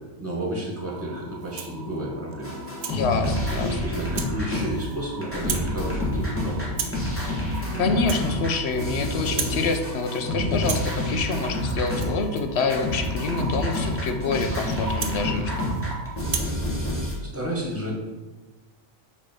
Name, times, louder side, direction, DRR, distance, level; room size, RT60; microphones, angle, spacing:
voice 1, 0.2-2.6 3.6-6.7 17.2-17.9, right 1 dB, 10° right, -3 dB, 1.9 m, -31 dB
sound 1, 0.8-16.3, right 4 dB, 55° right, 1.0 m, -42 dB
Rattle (instrument), 1.4-1.8 2.3-3.0 3.5-3.7 4.1-4.4 4.7-5.1 5.3-5.7 6.0-6.3 6.7-7.1 7.4-7.7 7.9-9.0 9.2-9.6 9.9-10.3 10.5-15.9 16.2-16.6, right 6 dB, 85° right, 1.2 m, -36 dB
sound 2, 2.4-5.0 5.2-12.3 12.6-17.1, left 1 dB, 10° left, 1.6 m, -28 dB
voice 2, 2.9-3.8 7.8-15.7, left 4 dB, 65° left, 6 dB, 1.0 m, -26 dB
8.6 x 3.3 x 5.3 m, 1.2 s
omnidirectional pair, 1.3 m